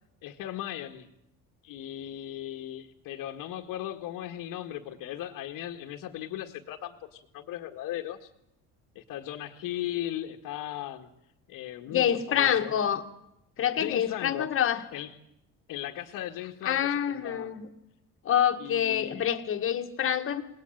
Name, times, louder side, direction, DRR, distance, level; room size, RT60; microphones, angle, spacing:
voice 1, 0.2-1.1 1.6-8.3 9.0-11.1 11.5-12.8 13.8-14.5 14.9-15.2 15.7-17.6 18.6-19.3, left 12 dB, 65° left, 1 dB, 1.8 m, -37 dB
voice 2, 11.9-13.0 13.6-14.8 16.7-17.7 18.3-20.4, left 9 dB, 35° left, 7 dB, 1.9 m, -26 dB
27.5 x 20.0 x 9.1 m, 0.87 s
cardioid pair, 160°, 35 cm